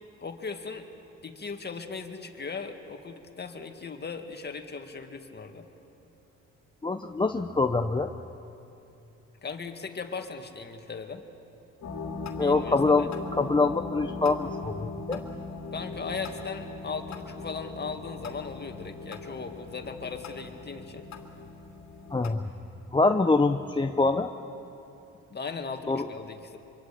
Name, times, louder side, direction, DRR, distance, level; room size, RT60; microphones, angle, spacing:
voice 1, 0.2-0.9 1.2-5.7 9.4-11.2 12.4-13.1 15.7-21.1 25.3-26.6, left 4 dB, 35° left, 5 dB, 2.1 m, -38 dB
voice 2, 6.8-8.1 12.4-15.2 22.1-22.4 22.9-24.3 25.9-26.1, left 3 dB, 15° left, 5 dB, 0.8 m, -25 dB
sound 1, 11.8-22.3, left 3 dB, 65° left, 2.6 m, -39 dB
24.5 x 24.0 x 8.5 m, 2.9 s
cardioid pair, 90°, 30 cm